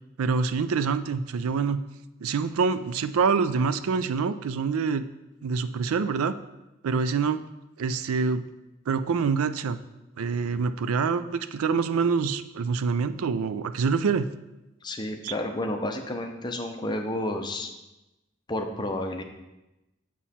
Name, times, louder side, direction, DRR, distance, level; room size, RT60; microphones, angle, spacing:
voice 1, 0.2-1.8 2.2-5.1 5.4-6.4 6.8-7.4 7.8-8.4 8.9-9.8 10.2-14.3 15.2-15.3, right 5 dB, 90° right, 13 dB, 0.4 m, -26 dB
voice 2, 14.8-17.7 18.5-19.2, left 1 dB, 20° left, 4 dB, 0.6 m, -31 dB
7.2 x 6.0 x 4.2 m, 0.99 s
head